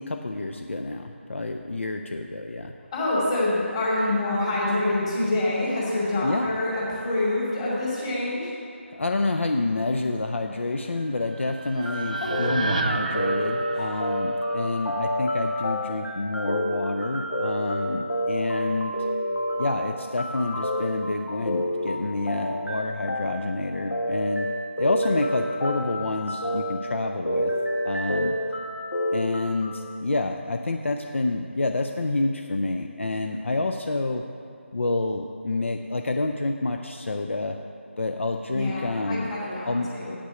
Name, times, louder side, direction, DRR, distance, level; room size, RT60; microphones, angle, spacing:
voice 1, 0.0-2.7 6.2-6.5 9.0-18.9 19.6-24.5 24.8-27.5 27.8-28.4 29.1-34.2 34.7-37.6 38.0-39.3 39.6-39.9, left 2 dB, 70° left, 4 dB, 0.5 m, -28 dB
voice 2, 2.9-8.5 12.2-12.5 13.7-13.8 38.5-40.1, left 2 dB, 25° left, -7 dB, 2.5 m, -26 dB
sound 1, 11.0-15.2, right 3 dB, 35° right, 0.4 m, -32 dB
sound 2, 11.8-29.7, equal, 85° left, 1.6 m, -29 dB
8.2 x 6.1 x 8.1 m, 2.5 s
figure-of-eight pair, 160°, 7 cm